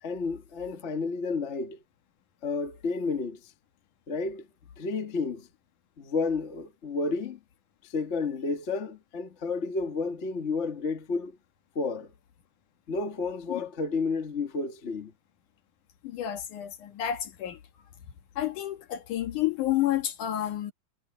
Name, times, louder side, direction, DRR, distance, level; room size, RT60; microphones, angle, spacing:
voice 1, 0.0-1.8 2.4-3.5 4.1-4.5 4.8-5.5 6.0-7.4 7.8-11.4 11.7-12.1 12.9-15.1, left 4 dB, 35° left, 1.1 m, -31 dB
voice 2, 16.0-17.6 18.4-20.7, left 12 dB, 65° left, 2.8 m, -30 dB
omnidirectional pair, 4.2 m